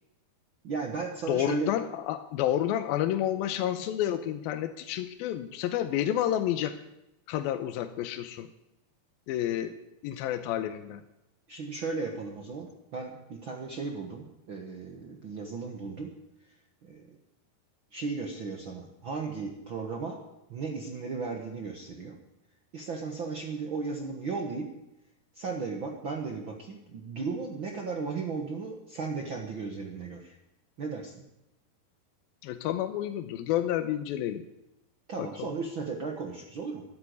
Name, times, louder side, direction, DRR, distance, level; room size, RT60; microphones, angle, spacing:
voice 1, 0.6-1.7 11.5-16.1 16.8-17.2 17.9-20.2 20.5-22.2 22.7-24.7 25.3-30.4 30.8-31.2 35.1-36.8, right 4 dB, 65° right, 2 dB, 1.2 m, -35 dB
voice 2, 1.3-6.8 7.3-8.5 9.3-9.8 10.0-11.0 32.4-34.4 35.2-35.5, left 11 dB, 80° left, 9 dB, 2.5 m, -30 dB
13.0 x 11.0 x 9.6 m, 0.91 s
omnidirectional pair, 4.6 m